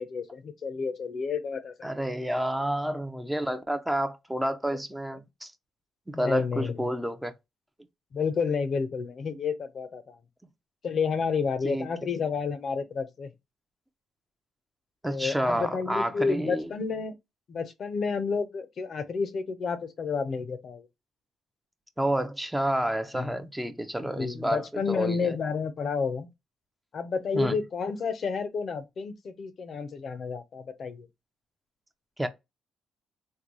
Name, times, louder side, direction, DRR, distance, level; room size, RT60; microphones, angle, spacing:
voice 1, 0.0-1.9 6.1-6.9 8.1-10.2 10.8-13.3 15.1-17.1 17.5-20.9 23.1-23.3 24.2-26.3 26.9-31.1, left 5 dB, 55° left, 0.6 m, -30 dB
voice 2, 1.8-5.5 6.1-7.3 11.6-11.9 15.0-16.7 22.0-25.4 27.3-27.6 32.2-32.3, right 1 dB, 5° right, 0.5 m, -29 dB
3.7 x 2.2 x 3.0 m
cardioid pair, 90°, 0 cm